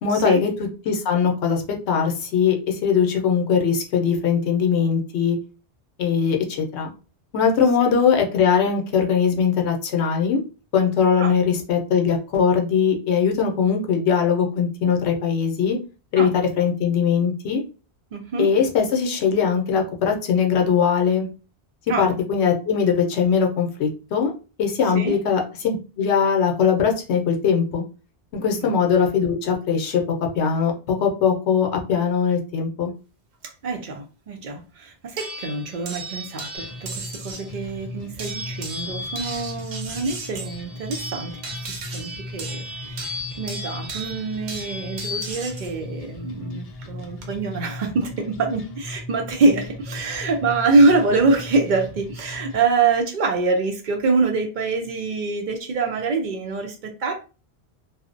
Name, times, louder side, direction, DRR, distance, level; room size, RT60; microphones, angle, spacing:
voice 1, 0.0-5.4 6.0-6.9 7.3-10.4 10.7-15.8 16.1-17.6 18.4-21.3 22.0-24.3 24.6-27.8 28.3-30.0 30.3-30.7 31.0-32.9, left 6 dB, 75° left, 2 dB, 0.9 m, -21 dB
voice 2, 18.1-18.5 21.9-22.1 24.9-25.2 28.6-28.7 33.6-57.1, right 3 dB, 55° right, 3 dB, 0.6 m, -24 dB
sound 1, 35.2-37.5 38.2-45.7 46.8-47.2, right 1 dB, 75° right, 0.9 m, -35 dB
sound 2, 36.6-52.6, left 2 dB, 55° left, 0.4 m, -37 dB
2.6 x 2.0 x 2.4 m, 0.34 s
omnidirectional pair, 1.1 m